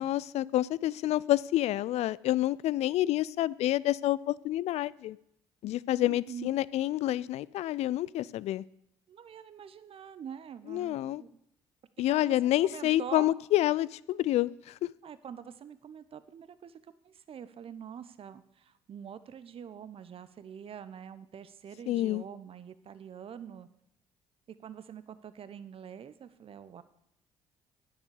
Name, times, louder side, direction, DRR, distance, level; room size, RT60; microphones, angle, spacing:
voice 1, 0.0-5.2 5.6-8.6 10.7-11.2 12.0-14.8 21.9-22.2, left 14 dB, 60° left, 21 dB, 0.4 m, -28 dB
voice 2, 6.0-6.6 9.1-11.3 12.1-13.3 15.0-16.8 17.0-23.7 24.5-26.8, right 8 dB, 50° right, 14 dB, 0.9 m, -45 dB
9.7 x 8.1 x 7.0 m, 0.79 s
hypercardioid pair, 55°, 12 cm